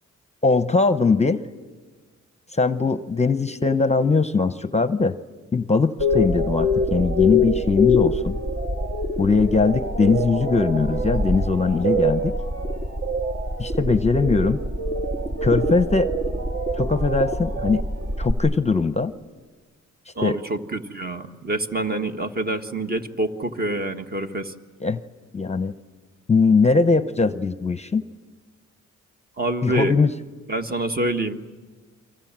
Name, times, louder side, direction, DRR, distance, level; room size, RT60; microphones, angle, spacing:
voice 1, 0.4-1.4 2.5-5.1 5.5-8.4 9.2-12.3 13.6-14.6 15.4-16.1 16.8-17.8 18.2-19.1 20.2-20.4 24.8-25.0 25.3-25.7 26.3-28.1 29.6-30.1, left 4 dB, 20° left, 11 dB, 0.8 m, -20 dB
sound 1, 6.0-18.3, left 1 dB, 50° right, 3.3 m, -24 dB
voice 2, 20.1-24.5 29.4-30.0 30.5-31.4, right 1 dB, 30° right, 6 dB, 1.6 m, -26 dB
30.0 x 24.0 x 7.5 m, 1.4 s
cardioid pair, 95°, 29 cm